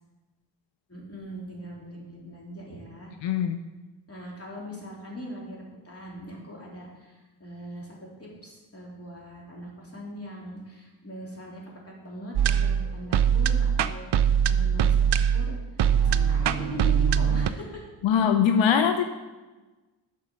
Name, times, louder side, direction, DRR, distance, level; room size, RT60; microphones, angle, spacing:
voice 1, 0.9-3.1 4.1-17.9 18.6-18.7, equal, 30° left, -3 dB, 3.3 m, -41 dB
voice 2, 3.2-3.6 18.0-19.0, left 7 dB, 85° left, 8 dB, 0.6 m, -22 dB
sound 1, 12.4-17.5, right 8 dB, 65° right, 0.6 m, -22 dB
9.3 x 5.8 x 6.2 m, 1.2 s
cardioid pair, 65°, 44 cm